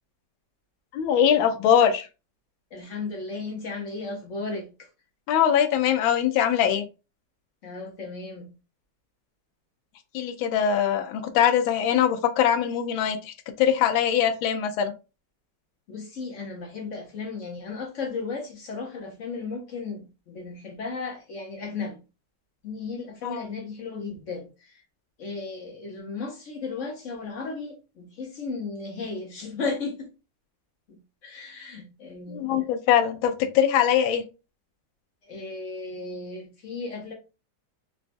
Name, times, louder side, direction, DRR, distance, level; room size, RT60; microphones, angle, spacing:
voice 1, 0.9-2.1 5.3-6.8 10.1-14.9 23.2-23.4 32.3-34.2, left 9 dB, 90° left, 1.4 m, -22 dB
voice 2, 2.7-4.7 7.6-8.5 15.9-22.0 22.6-24.8 25.2-30.1 30.9-31.0 31.2-32.5 35.2-37.1, left 4 dB, 65° left, 0.8 m, -35 dB
4.0 x 2.3 x 2.5 m
omnidirectional pair, 2.1 m